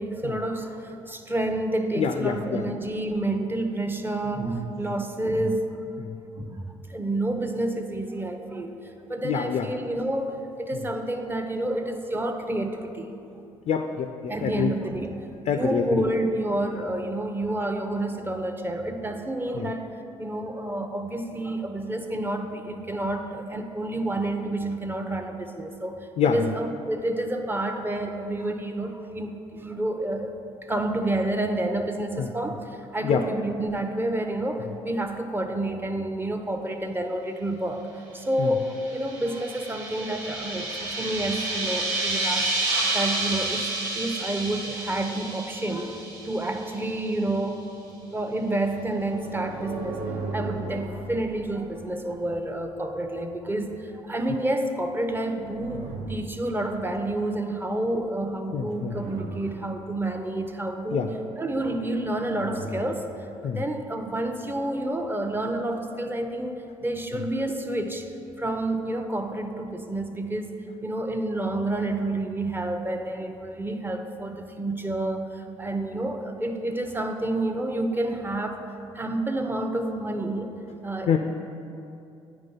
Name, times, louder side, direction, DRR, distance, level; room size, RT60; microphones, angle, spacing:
voice 1, 0.0-5.8 6.3-8.7 9.1-13.1 14.3-15.2 15.6-19.9 20.2-26.0 26.2-37.8 38.1-42.5 42.9-43.7 43.9-47.7 48.1-50.1 50.3-63.0 63.4-68.1 68.4-78.6 78.9-80.6 80.8-81.2, right 1 dB, 15° right, 5 dB, 0.7 m, -29 dB
voice 2, 2.0-2.6 6.0-6.1 9.2-9.7 13.7-14.7 15.5-16.0 19.5-19.7 26.2-26.5 32.2-32.3 33.0-33.3 38.4-38.5 58.5-59.0 60.9-61.1 63.4-63.6 67.1-67.2 81.1-81.2, left 7 dB, 60° left, 6 dB, 0.4 m, -26 dB
sound 1, 38.6-46.9, right 2 dB, 90° right, 0.9 m, -30 dB
sound 2, 47.4-52.9 54.9-56.8 58.4-59.9 61.7-63.0, right 2 dB, 60° right, 0.8 m, -38 dB
9.1 x 3.1 x 5.6 m, 2.7 s
supercardioid pair, 70°, 13 cm